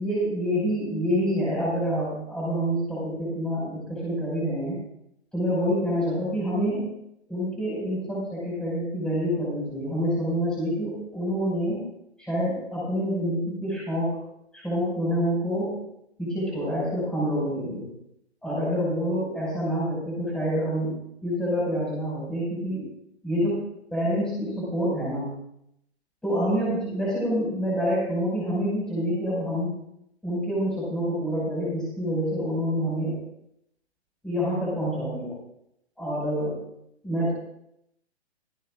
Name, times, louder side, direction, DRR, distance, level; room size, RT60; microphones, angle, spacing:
voice 1, 0.0-4.8 5.3-7.0 7.3-11.8 12.2-14.2 14.5-15.8 16.2-17.9 18.4-22.8 23.2-23.6 23.9-25.3 26.2-29.7 30.2-33.2 34.2-35.3 36.0-36.6 37.0-37.3, equal, ahead, -7 dB, 5.7 m, -27 dB
27.5 x 10.0 x 2.5 m, 0.76 s
figure-of-eight pair, 130°, 34 cm